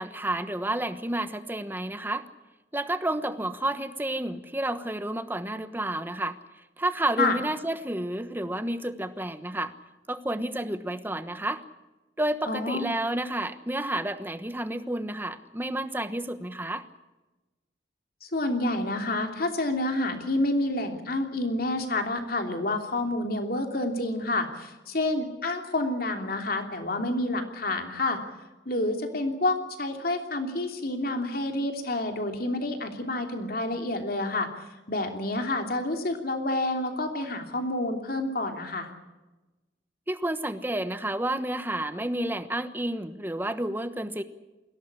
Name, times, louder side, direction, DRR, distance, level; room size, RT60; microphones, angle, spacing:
voice 1, 0.0-2.3 2.7-6.4 6.8-9.7 10.1-11.6 12.2-16.9 40.1-44.2, right 1 dB, 10° right, 11 dB, 1.1 m, -30 dB
voice 2, 12.5-12.9 18.2-28.2 28.6-38.9, left 2 dB, 55° left, 5 dB, 3.1 m, -29 dB
22.0 x 17.0 x 10.0 m, 1.1 s
head